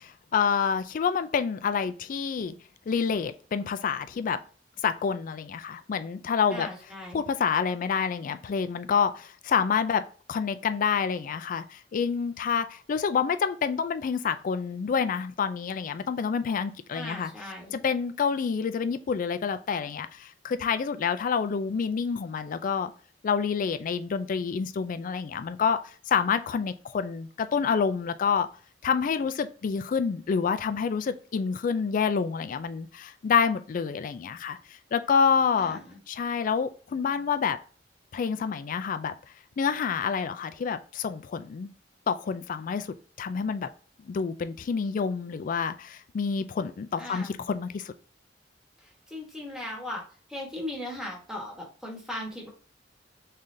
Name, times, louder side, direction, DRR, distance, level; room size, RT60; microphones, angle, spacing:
voice 1, 0.0-2.5 2.9-4.4 4.8-6.7 7.1-10.0 10.3-17.3 17.7-22.9 23.2-25.8 26.1-28.5 28.8-34.6 34.9-35.8 36.1-37.6 38.1-39.1 39.6-41.7 42.1-43.7 44.1-47.9, left 6 dB, 45° left, 11 dB, 0.3 m, -28 dB
voice 2, 6.5-7.2 16.9-17.8 35.6-36.0 47.0-47.5 48.8-50.0 50.3-52.5, left 1 dB, 5° right, -1 dB, 1.2 m, -38 dB
3.7 x 3.2 x 2.6 m, 0.40 s
head